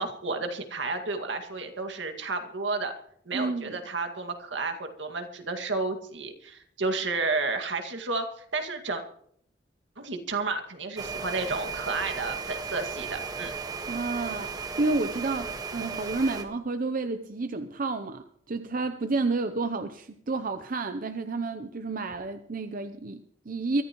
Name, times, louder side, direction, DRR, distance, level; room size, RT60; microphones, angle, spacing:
voice 1, 0.0-2.9 3.3-9.0 10.0-13.5, right 3 dB, 75° right, 5 dB, 2.0 m, -31 dB
voice 2, 3.3-3.8 13.9-23.8, right 3 dB, 50° right, 9 dB, 0.7 m, -30 dB
sound 1, 11.0-16.4, right 5 dB, 20° right, 1.4 m, -35 dB
23.5 x 14.5 x 3.1 m, 0.65 s
head